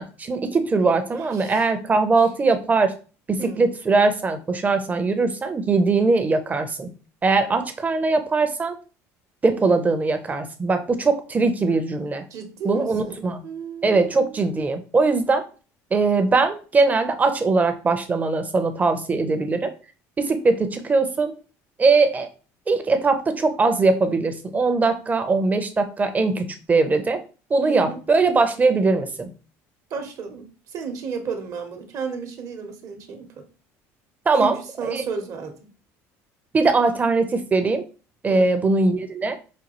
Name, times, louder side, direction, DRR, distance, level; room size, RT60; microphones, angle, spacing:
voice 1, 0.0-2.9 3.3-6.9 7.2-8.8 9.4-12.2 12.6-13.4 13.8-15.4 15.9-19.7 20.2-21.3 21.8-22.3 22.7-27.2 27.5-29.3 34.3-35.0 36.5-37.9 38.2-39.4, right 3 dB, 20° right, 0.6 m, -21 dB
voice 2, 1.2-1.6 2.2-2.3 3.4-3.6 12.3-14.6 27.6-28.0 29.9-33.5 34.4-35.7 38.3-38.5, right 5 dB, 55° right, 0.9 m, -33 dB
5.2 x 2.3 x 3.0 m
supercardioid pair, 100°, 7 cm